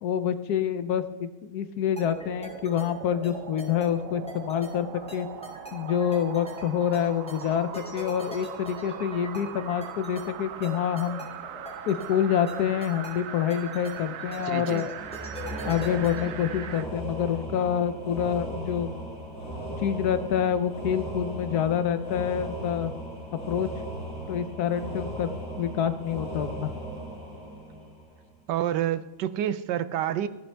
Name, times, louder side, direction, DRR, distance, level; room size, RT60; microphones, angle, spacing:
voice 1, 0.0-5.3 5.7-11.2 11.8-14.9 15.6-18.9 19.8-22.9 23.5-23.7 24.3-25.3 25.6-26.7, left 9 dB, 70° left, 11 dB, 1.2 m, -27 dB
sound 1, 1.9-16.9 17.3-17.4, right 9 dB, 65° right, 0.9 m, -41 dB
sound 2, 2.0-16.7, equal, 5° left, 2.5 m, -42 dB
voice 2, 14.4-14.9 28.5-30.3, right 11 dB, 80° right, 14 dB, 1.3 m, -28 dB
sound 3, 15.0-28.4, right 1 dB, 50° left, 4.3 m, -37 dB
15.0 x 11.0 x 3.4 m, 1.2 s
omnidirectional pair, 1.8 m